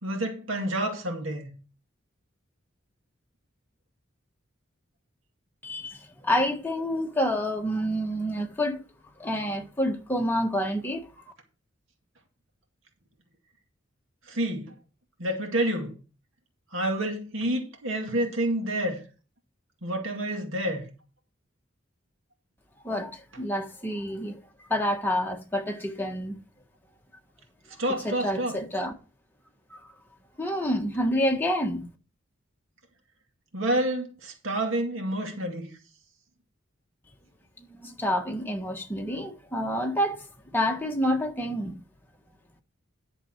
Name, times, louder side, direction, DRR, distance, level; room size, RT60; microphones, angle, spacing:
voice 1, 0.0-1.5 14.3-14.7 15.2-16.0 16.7-19.0 19.8-20.9 27.8-28.6 33.5-35.7, right 1 dB, 75° right, 2.2 m, -28 dB
voice 2, 5.6-8.8 9.2-11.1 22.8-26.4 27.9-28.9 29.7-29.9 30.4-31.9 37.6-41.8, equal, 10° left, 1.5 m, -28 dB
11.0 x 6.9 x 4.5 m
head